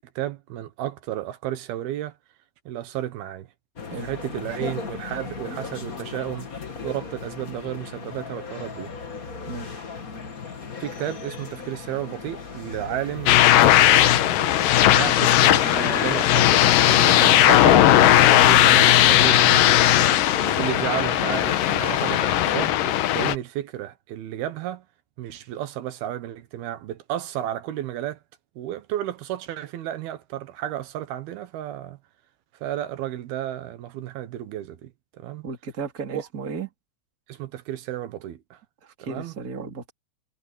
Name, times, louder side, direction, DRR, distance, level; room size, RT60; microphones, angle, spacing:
voice 1, 0.0-2.1 2.7-3.5 4.0-8.9 10.8-20.1 20.5-24.9 25.2-28.2 28.6-32.0 32.5-34.9 35.2-35.4 36.1-36.3 37.3-38.6 39.0-39.3, right 12 dB, 80° right, 3.1 m, -32 dB
sound 1, 3.8-22.5, left 4 dB, 35° left, 1.4 m, -35 dB
voice 2, 9.5-9.8 35.4-36.7 38.8-39.9, right 5 dB, 25° right, 2.5 m, -34 dB
sound 2, 13.3-23.3, left 13 dB, 70° left, 2.4 m, -17 dB
sound 3, 13.7-23.1, right 5 dB, 60° right, 7.1 m, -43 dB
omnidirectional pair, 4.4 m